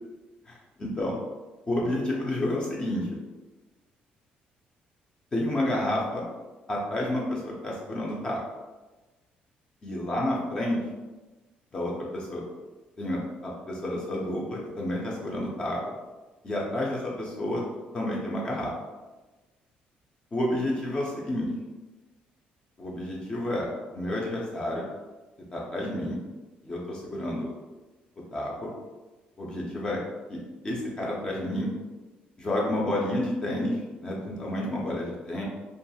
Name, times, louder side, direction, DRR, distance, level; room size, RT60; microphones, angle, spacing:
voice 1, 0.8-1.1 1.7-3.2 5.3-6.3 6.7-8.4 9.8-10.8 11.7-12.5 13.0-15.8 16.4-17.6 17.9-18.7 20.3-21.5 22.8-24.8 25.5-26.2 26.6-27.5 28.3-28.7 29.4-30.0 30.3-31.7 32.4-35.4, left 1 dB, 25° left, -3 dB, 0.5 m, -30 dB
2.5 x 2.3 x 2.7 m, 1.2 s
cardioid pair, 130°, 3 cm